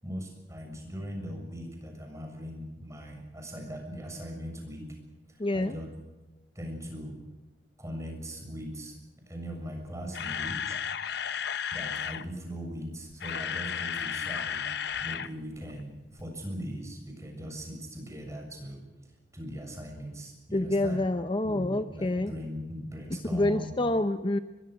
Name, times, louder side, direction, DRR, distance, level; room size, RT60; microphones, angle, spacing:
voice 1, 0.0-5.0 5.3-5.9 6.6-7.2 7.8-8.9 9.3-10.8 11.7-18.8 19.3-21.0 21.4-23.8, equal, 15° right, 3 dB, 7.0 m, -40 dB
voice 2, 5.4-5.8 20.5-22.3 23.3-24.4, left 1 dB, 30° left, 10 dB, 0.7 m, -27 dB
Camera, 9.8-12.2 13.0-15.3 15.6-15.7 16.2-16.3, left 7 dB, 65° left, 0.9 m, -33 dB
23.5 x 22.0 x 6.5 m, 1.1 s
head